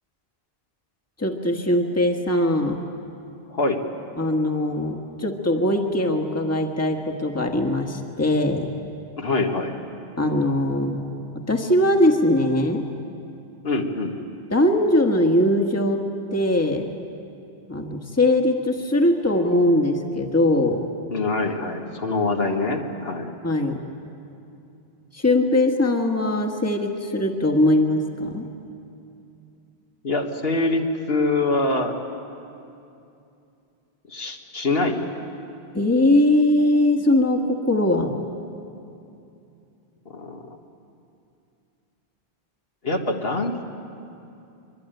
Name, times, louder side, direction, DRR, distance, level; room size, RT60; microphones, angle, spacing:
voice 1, 1.2-2.8 4.2-8.7 10.2-11.1 11.5-12.9 14.5-16.0 16.3-16.9 17.7-20.8 23.4-23.8 25.1-28.5 35.7-38.1, left 1 dB, 15° left, 3 dB, 1.6 m, -21 dB
voice 2, 9.2-9.7 13.6-14.2 21.1-23.3 30.0-31.9 34.1-35.1 40.1-40.4 42.8-43.6, left 2 dB, 70° left, 2 dB, 2.0 m, -24 dB
24.0 x 23.0 x 9.2 m, 2.7 s
omnidirectional pair, 1.0 m